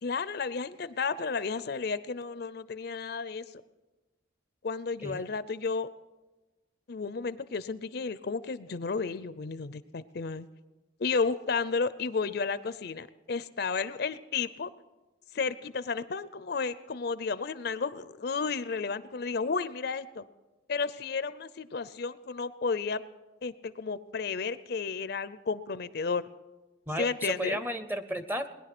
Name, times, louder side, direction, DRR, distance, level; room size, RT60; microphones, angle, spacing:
voice 1, 0.0-3.4 4.6-5.9 6.9-10.5 11.0-14.7 15.3-20.2 20.7-23.0 23.4-26.2 27.0-27.6, left 4 dB, 55° left, 15 dB, 0.5 m, -32 dB
voice 2, 26.9-28.5, equal, 10° right, 11 dB, 0.6 m, -33 dB
20.0 x 10.5 x 6.0 m, 1.1 s
head